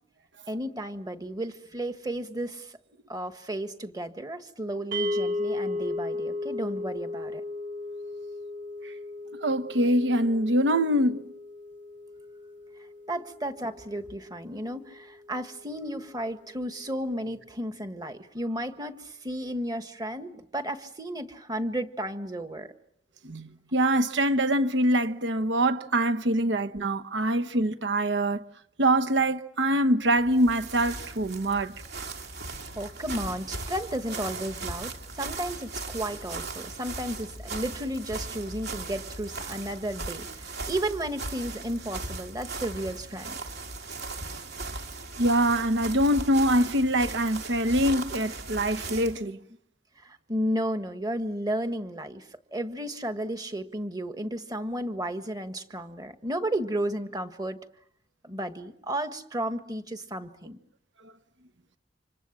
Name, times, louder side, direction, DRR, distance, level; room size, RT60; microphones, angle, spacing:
voice 1, 0.5-2.8 3.1-7.4 13.1-22.7 26.4-26.5 32.7-43.4 50.0-57.6 58.2-60.6, right 1 dB, 20° right, 1.6 m, -33 dB
sound 1, 4.9-15.2, left 2 dB, 45° right, 2.4 m, -35 dB
voice 2, 9.4-11.3 23.2-28.4 28.8-31.7 45.2-49.4, right 1 dB, 80° right, 1.1 m, -24 dB
sound 2, 30.1-49.2, right 3 dB, 60° right, 2.9 m, -38 dB
29.0 x 26.0 x 7.4 m
head